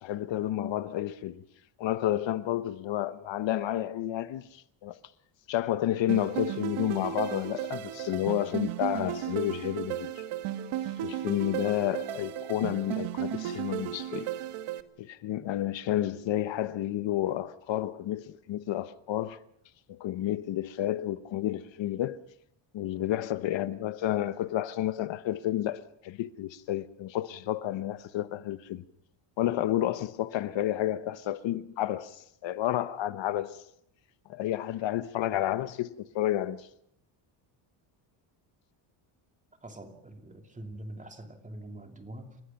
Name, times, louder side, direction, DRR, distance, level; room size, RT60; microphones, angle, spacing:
voice 1, 0.0-1.4 1.8-5.0 5.5-10.2 11.0-14.3 15.0-19.4 19.9-22.2 22.7-28.8 29.4-33.6 34.3-36.7, left 13 dB, 65° left, 1.0 m, -31 dB
sound 1, 6.1-14.8, right 11 dB, 75° right, 1.4 m, -34 dB
voice 2, 39.6-42.4, right 1 dB, 15° right, 2.8 m, -44 dB
29.5 x 16.0 x 5.9 m
cardioid pair, 125°, 50 cm